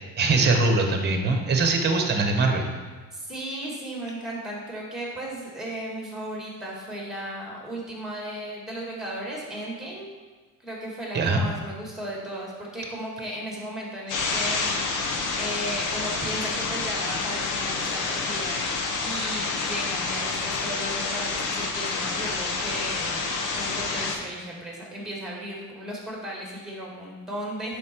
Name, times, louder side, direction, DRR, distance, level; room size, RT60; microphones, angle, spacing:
voice 1, 0.2-2.6 11.1-11.5, right 3 dB, 30° right, 3 dB, 1.2 m, -22 dB
voice 2, 3.1-10.1 10.6-27.8, right 1 dB, ahead, -3 dB, 2.1 m, -35 dB
sound 1, 14.1-24.1, left 4 dB, 55° left, 1.2 m, -28 dB
10.0 x 5.3 x 4.6 m, 1.4 s
cardioid pair, 165°, 37 cm